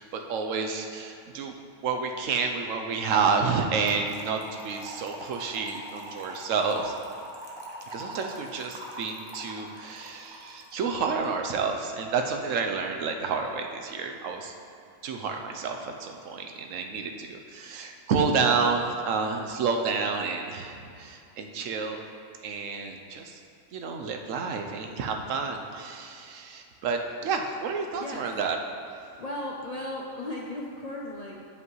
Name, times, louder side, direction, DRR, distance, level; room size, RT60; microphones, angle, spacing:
voice 1, 0.0-1.5 1.8-6.9 7.9-14.5 15.0-22.1 22.4-23.4 23.7-28.6, right 5 dB, 80° right, 3 dB, 1.0 m, -29 dB
Trickle dribble / Fill (with liquid), 3.9-11.0, right 1 dB, 25° right, 0.7 m, -42 dB
voice 2, 27.9-28.3 29.2-31.5, left 1 dB, 50° left, -3 dB, 0.5 m, -36 dB
9.5 x 5.4 x 3.1 m, 2.5 s
omnidirectional pair, 1.3 m